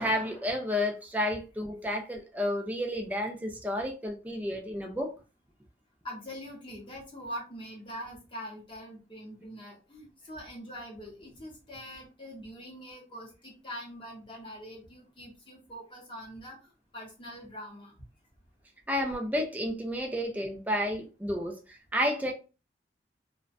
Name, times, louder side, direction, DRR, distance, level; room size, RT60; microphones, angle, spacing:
voice 1, 0.0-5.1 18.9-22.3, left 1 dB, 10° right, 0.4 m, -31 dB
voice 2, 6.0-16.6 16.9-17.9, equal, 25° left, 0.7 m, -43 dB
2.4 x 2.1 x 2.5 m
head